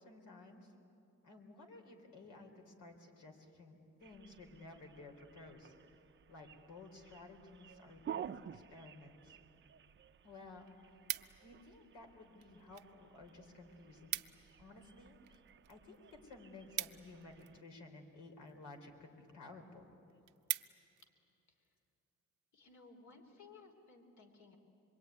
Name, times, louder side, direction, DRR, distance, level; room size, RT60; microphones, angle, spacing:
voice 1, 0.0-0.7 1.2-5.7 6.3-9.4 10.2-10.7 11.4-14.2 14.6-15.2 15.7-16.0 16.2-19.9, left 2 dB, 80° left, 3 dB, 4.3 m, -55 dB
sound 1, 4.0-17.6, right 9 dB, 40° right, 0.6 m, -53 dB
sound 2, 9.9-10.0 10.3-11.7 12.4-12.9 13.2-13.3 13.6-13.7 13.9-14.5 14.9-17.7 18.4-18.8 19.3-19.4 19.7-19.8 20.1-21.1 21.6-21.8, right 14 dB, 85° right, 0.8 m, -43 dB
voice 2, 22.5-24.6, left 4 dB, 65° left, 5 dB, 3.4 m, -59 dB
26.0 x 23.0 x 9.5 m, 2.9 s
cardioid pair, 90°, 30 cm